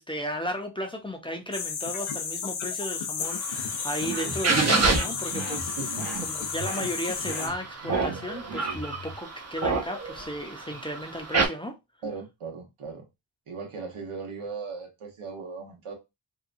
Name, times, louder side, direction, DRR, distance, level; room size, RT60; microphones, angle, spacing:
voice 1, 0.0-11.8, equal, 10° left, 0.5 m, -35 dB
sound 1, 1.5-7.5, left 6 dB, 80° left, 0.7 m, -33 dB
sound 2, 3.2-11.5, right 3 dB, 30° right, 0.7 m, -29 dB
sound 3, 4.0-9.2, right 3 dB, 65° right, 1.2 m, -38 dB
voice 2, 5.8-6.2 12.0-13.0 13.5-15.9, right 5 dB, 90° right, 1.0 m, -38 dB
2.8 x 2.2 x 2.5 m
cardioid pair, 65°, 48 cm